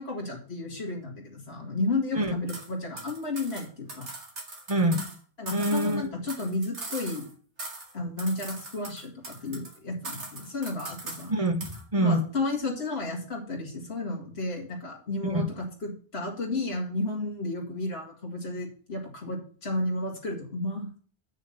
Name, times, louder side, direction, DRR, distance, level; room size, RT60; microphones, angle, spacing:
voice 1, 0.0-4.1 5.4-7.3 7.9-11.3 12.0-21.0, left 2 dB, 65° left, -1 dB, 2.5 m, -32 dB
sound 1, 2.5-2.7 3.0-5.2 5.5-7.3 7.6-7.9 8.2-9.8 10.0-11.3 11.6-11.8, right 2 dB, 85° right, 2.3 m, -40 dB
voice 2, 4.7-5.0 5.5-6.1 11.3-12.2 15.2-15.4, right 1 dB, 30° right, 7 dB, 1.1 m, -25 dB
8.1 x 6.4 x 5.6 m, 0.43 s
omnidirectional pair, 1.2 m